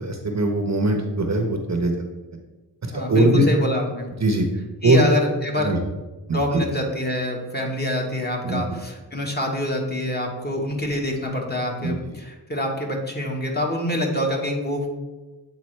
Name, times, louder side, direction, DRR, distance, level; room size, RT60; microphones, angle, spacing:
voice 1, 0.0-2.1 2.8-3.5 4.2-4.5 4.8-5.0 5.6-5.8 6.3-6.4 8.4-8.6 11.8-11.9, right 2 dB, 40° right, 4 dB, 0.8 m, -21 dB
voice 2, 2.9-4.1 4.8-5.7 6.3-15.0, equal, 25° left, 0 dB, 1.3 m, -26 dB
8.3 x 3.8 x 3.2 m, 1.2 s
cardioid pair, 65°, 43 cm